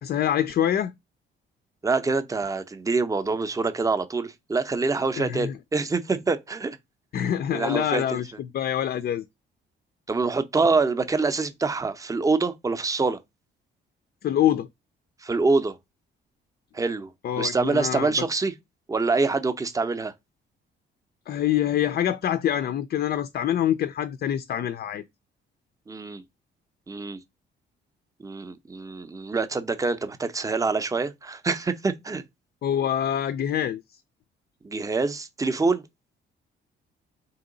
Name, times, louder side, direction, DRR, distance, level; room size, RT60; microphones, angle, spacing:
voice 1, 0.0-0.9 5.2-5.5 7.1-8.3 8.5-9.2 14.2-14.7 17.2-18.1 21.3-25.0 32.6-33.8, left 10 dB, 55° left, 0.4 m, -25 dB
voice 2, 1.8-6.8 7.5-8.2 10.1-13.2 15.2-15.8 16.7-17.1 17.4-18.5 18.9-20.1 25.9-26.2 26.9-27.2 28.2-32.2 34.6-35.8, right 4 dB, 15° right, 0.5 m, -25 dB
3.8 x 2.8 x 3.8 m
cardioid pair, 90°, 20 cm